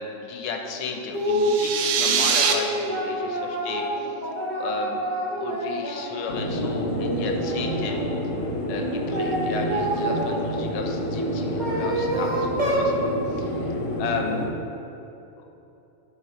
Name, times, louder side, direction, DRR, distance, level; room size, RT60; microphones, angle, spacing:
voice 1, 0.0-4.2 4.6-5.0 5.4-8.0 8.7-14.4, left 5 dB, 75° left, 3 dB, 1.6 m, -34 dB
sound 1, 1.1-1.6 2.1-6.1 6.5-8.1 8.8-10.4 11.2-12.9, right 1 dB, 30° right, 1.0 m, -28 dB
sound 2, 1.3-2.5, right 7 dB, 70° right, 1.2 m, -23 dB
sound 3, 6.3-14.5, equal, 50° left, 1.3 m, -29 dB
11.0 x 4.7 x 4.1 m, 2.9 s
omnidirectional pair, 2.4 m